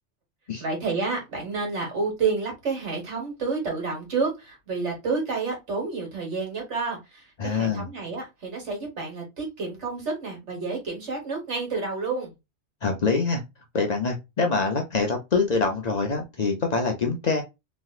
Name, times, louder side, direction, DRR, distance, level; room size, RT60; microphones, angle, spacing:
voice 1, 0.6-12.3, right 4 dB, 85° right, 1 dB, 1.7 m, -29 dB
voice 2, 7.4-7.9 12.8-13.4 13.7-17.4, left 4 dB, 50° left, 3 dB, 0.6 m, -25 dB
3.1 x 2.8 x 2.3 m, 0.23 s
omnidirectional pair, 1.2 m